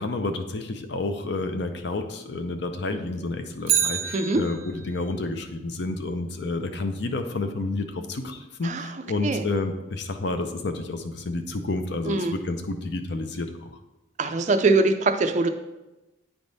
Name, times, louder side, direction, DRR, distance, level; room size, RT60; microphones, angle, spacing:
voice 1, 0.0-13.7, left 2 dB, 55° left, 7 dB, 0.6 m, -30 dB
Bicycle, 3.6-5.0 13.3-13.4, right 9 dB, 80° right, 0.7 m, -27 dB
voice 2, 14.2-15.5, right 3 dB, 35° right, 7 dB, 0.4 m, -22 dB
8.9 x 3.5 x 4.0 m, 1.0 s
head